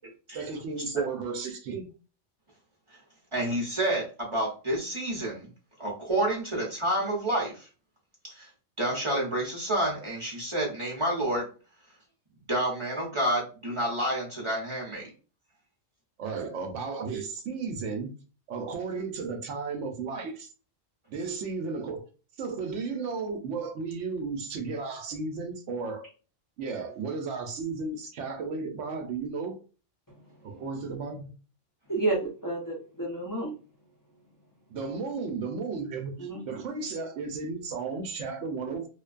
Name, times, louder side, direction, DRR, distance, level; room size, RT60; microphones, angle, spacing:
voice 1, 0.3-1.9 16.2-18.1 18.5-20.5 21.1-22.0 22.4-26.1 26.6-29.6 30.4-31.3 34.7-38.9, right 4 dB, 70° right, 0.9 m, -34 dB
voice 2, 3.3-5.5 5.8-7.7 8.2-8.5 8.8-11.4 12.5-15.1, right 1 dB, 25° right, 0.8 m, -29 dB
voice 3, 31.9-33.6 36.2-36.4, right 2 dB, 30° left, 0.4 m, -30 dB
2.5 x 2.2 x 2.3 m
omnidirectional pair, 1.3 m